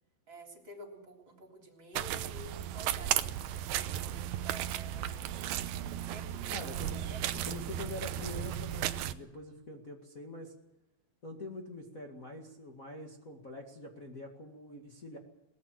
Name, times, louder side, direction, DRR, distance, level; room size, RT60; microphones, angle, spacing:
voice 1, 0.3-5.6 5.9-7.5, right 1 dB, 30° right, 3 dB, 3.5 m, -51 dB
sound 1, 1.9-9.1, right 11 dB, 85° right, 2.0 m, -35 dB
voice 2, 6.5-7.1 7.4-10.5 11.2-15.2, left 2 dB, 80° left, 0 dB, 0.7 m, -45 dB
23.0 x 19.5 x 7.6 m, 0.92 s
omnidirectional pair, 5.4 m